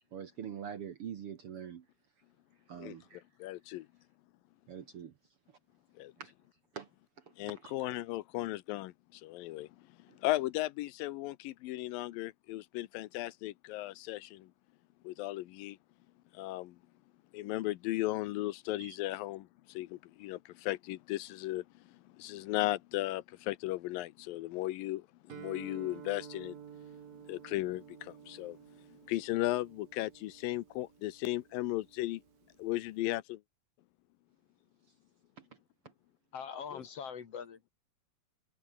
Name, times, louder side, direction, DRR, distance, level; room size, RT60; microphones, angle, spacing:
voice 1, 0.1-1.9 2.7-3.2 4.7-5.1 6.2-6.3 6.7-6.9 7.2-7.7 10.1-10.2 18.8-19.0 35.4-35.5, right 8 dB, 55° right, 1.7 m, -44 dB
voice 2, 3.4-3.9 6.0-6.1 7.4-9.7 10.0-14.5 15.0-15.8 16.3-16.8 17.3-26.6 27.3-28.6 29.1-32.2 32.6-33.4 36.7-36.8, left 17 dB, 90° left, 2.6 m, -36 dB
Guitar, 25.3-33.0, right 8 dB, 85° right, 4.5 m, -52 dB
voice 3, 36.3-37.7, left 7 dB, 50° left, 3.0 m, -42 dB
omnidirectional pair, 4.0 m